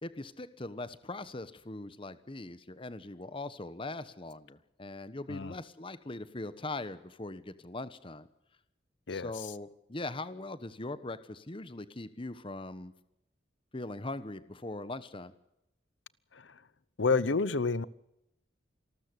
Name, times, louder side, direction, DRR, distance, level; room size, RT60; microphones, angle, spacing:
voice 1, 0.0-8.3 9.1-12.9 13.7-15.3, left 2 dB, 30° left, 14 dB, 1.1 m, -41 dB
voice 2, 17.0-17.8, left 4 dB, 90° left, 19 dB, 0.8 m, -28 dB
26.5 x 13.0 x 8.2 m, 0.84 s
head